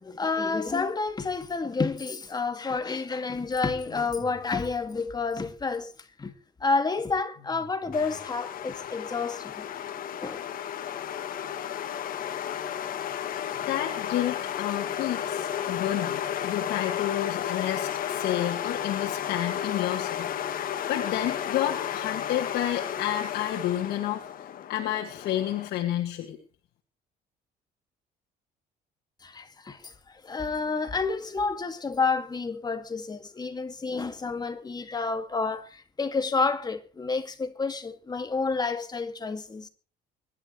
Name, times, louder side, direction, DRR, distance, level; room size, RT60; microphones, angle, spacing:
voice 1, 0.0-5.9 6.2-6.3 6.6-9.7 10.2-10.5 29.2-29.9 30.2-39.7, left 4 dB, 25° left, 2.2 m, -29 dB
sound 1, 3.8-4.7 7.3-8.5, left 2 dB, 40° left, 4.0 m, -50 dB
sound 2, 7.9-25.7, left 9 dB, 55° left, 1.7 m, -33 dB
voice 2, 13.7-20.3 20.9-24.2 24.7-26.4, left 12 dB, 75° left, 2.2 m, -30 dB
24.5 x 12.0 x 3.2 m
cardioid pair, 110°, 17 cm